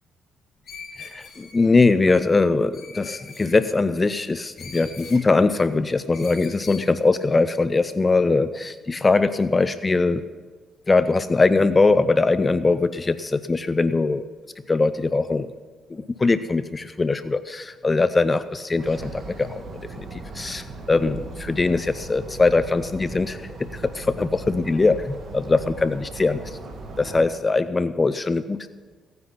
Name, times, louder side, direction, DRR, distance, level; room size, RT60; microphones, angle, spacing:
Screech, 0.6-1.7 2.7-3.6 4.6-5.2 6.1-6.9, left 5 dB, 60° left, 3.7 m, -41 dB
voice 1, 1.0-10.2 10.9-14.3 14.7-15.5 15.9-26.6 27.0-28.7, left 3 dB, 25° left, 13 dB, 0.5 m, -21 dB
sound 1, 18.8-27.3, right 2 dB, 55° right, 2.3 m, -38 dB
17.0 x 9.6 x 5.7 m, 1.5 s
cardioid pair, 90°, 0 cm